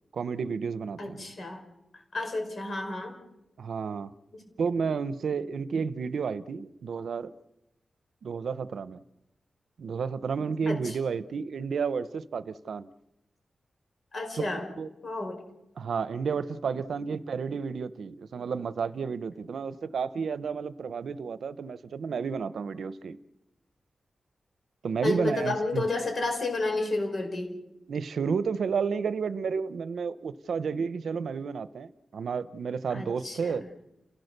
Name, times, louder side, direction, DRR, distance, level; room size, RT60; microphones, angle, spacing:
voice 1, 0.1-1.3 3.6-4.1 4.6-7.3 8.2-9.0 9.8-12.9 14.4-14.9 15.8-23.2 24.8-25.8 27.9-33.6, right 5 dB, 80° right, 15 dB, 0.8 m, -31 dB
voice 2, 1.0-1.6 2.1-3.1 4.3-4.4 10.7-10.9 14.1-14.7 15.0-15.4 25.0-27.5 32.9-33.7, left 2 dB, 45° left, 4 dB, 5.0 m, -31 dB
30.0 x 17.0 x 6.7 m, 0.93 s
wide cardioid pair, 145°, 0 cm